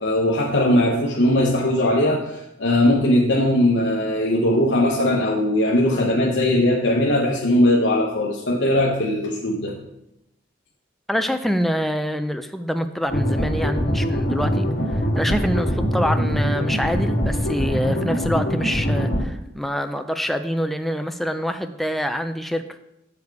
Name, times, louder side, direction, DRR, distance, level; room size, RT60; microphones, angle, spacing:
voice 1, 0.0-9.7, left 1 dB, 70° left, -2 dB, 1.0 m, -19 dB
voice 2, 11.1-22.6, equal, ahead, 7 dB, 0.4 m, -25 dB
sound 1, 13.1-19.2, equal, 55° left, 2.0 m, -23 dB
7.2 x 6.7 x 4.7 m, 0.87 s
head